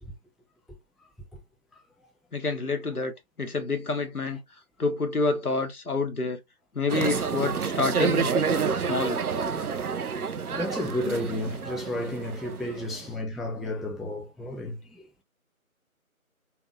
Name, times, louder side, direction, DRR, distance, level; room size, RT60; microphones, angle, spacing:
voice 1, 2.3-4.4 4.8-6.4 6.7-8.3 8.9-9.2, left 3 dB, 85° left, 1.1 m, -28 dB
sound 1, 6.9-13.1, right 6 dB, 85° right, 0.6 m, -29 dB
voice 2, 10.5-15.1, left 1 dB, ahead, 0.5 m, -32 dB
3.4 x 2.4 x 3.1 m
figure-of-eight pair, 170°, 43 cm